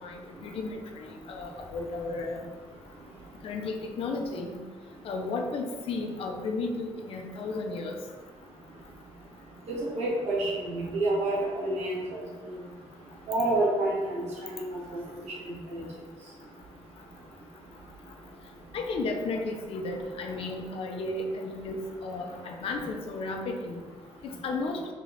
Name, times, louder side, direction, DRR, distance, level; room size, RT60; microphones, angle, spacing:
voice 1, 0.0-2.4 3.4-4.6 5.0-8.0 18.7-23.8 24.2-24.8, left 3 dB, 55° left, 2 dB, 0.6 m, -34 dB
voice 2, 9.7-12.2 13.3-14.6 15.4-15.8, right 2 dB, 70° right, -5 dB, 1.5 m, -28 dB
3.7 x 3.3 x 3.8 m, 1.4 s
cardioid pair, 165°, 12 cm